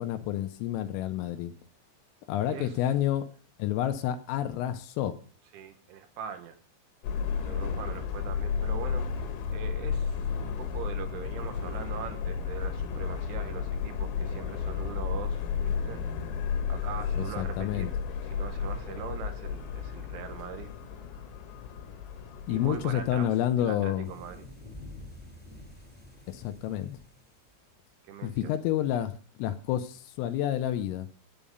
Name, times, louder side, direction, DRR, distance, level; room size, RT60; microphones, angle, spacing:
voice 1, 0.0-1.5 2.3-3.3 3.6-5.2 17.2-17.9 22.5-24.1 26.3-27.0 28.2-31.1, left 11 dB, 85° left, 8 dB, 3.6 m, -29 dB
voice 2, 2.4-2.8 5.5-6.6 7.4-16.0 16.7-17.9 18.2-20.7 22.5-24.5 28.0-28.5, right 8 dB, 75° right, 7 dB, 3.5 m, -42 dB
Subway metro underground, 7.0-23.2, left 6 dB, 70° left, 3.6 m, -33 dB
sound 1, 24.0-27.7 29.6-29.9, left 1 dB, 5° right, 1.7 m, -48 dB
12.5 x 8.8 x 5.3 m, 0.41 s
omnidirectional pair, 5.9 m